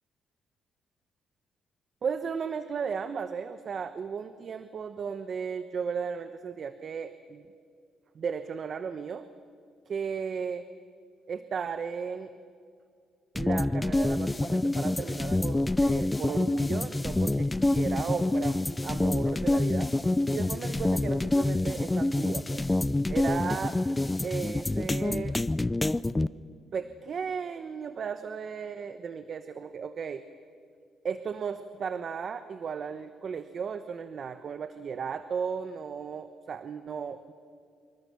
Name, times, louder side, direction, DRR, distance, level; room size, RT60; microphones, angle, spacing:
voice 1, 2.0-7.5 8.1-9.3 9.9-10.6 11.3-12.3 13.3-19.9 20.3-22.7 23.1-23.8 24.2-25.4 26.7-30.2 31.0-37.3, right 6 dB, 50° right, 11 dB, 1.0 m, -35 dB
sound 1, 13.4-26.3, left 2 dB, 15° left, 0.5 m, -27 dB
27.0 x 23.5 x 7.0 m, 2.2 s
cardioid pair, 90°, 0 cm